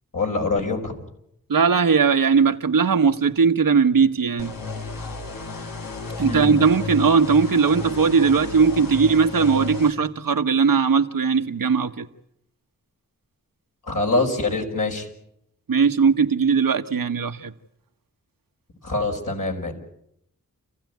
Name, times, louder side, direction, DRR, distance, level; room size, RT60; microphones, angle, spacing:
voice 1, 0.1-0.9 6.2-6.6 13.9-15.1 18.8-19.7, left 3 dB, 70° left, 5.5 m, -24 dB
voice 2, 1.5-4.5 6.2-12.1 15.7-17.5, right 5 dB, 80° right, 1.2 m, -19 dB
sound 1, 4.4-9.9, left 3 dB, 90° left, 2.1 m, -33 dB
28.5 x 15.5 x 9.3 m
cardioid pair, 45°, 33 cm